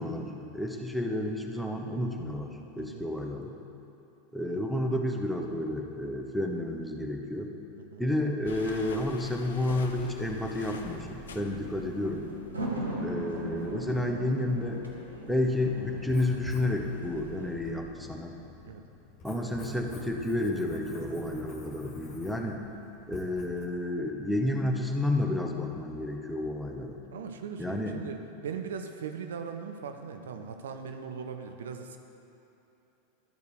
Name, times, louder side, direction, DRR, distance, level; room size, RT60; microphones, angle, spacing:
voice 1, 0.0-3.5 4.3-7.5 8.0-12.3 13.0-14.8 15.3-18.3 19.2-22.6 23.1-27.0 27.6-27.9, left 1 dB, ahead, 1 dB, 0.8 m, -31 dB
sound 1, 8.5-12.8, left 5 dB, 65° left, 0.5 m, -45 dB
sound 2, 10.3-17.7, right 1 dB, 80° right, 1.0 m, -39 dB
Writing, 16.0-23.6, left 2 dB, 35° left, 1.7 m, -47 dB
voice 2, 27.1-32.0, right 6 dB, 65° right, 6 dB, 0.5 m, -39 dB
12.0 x 4.7 x 4.8 m, 2.9 s
figure-of-eight pair, 85°, 0 cm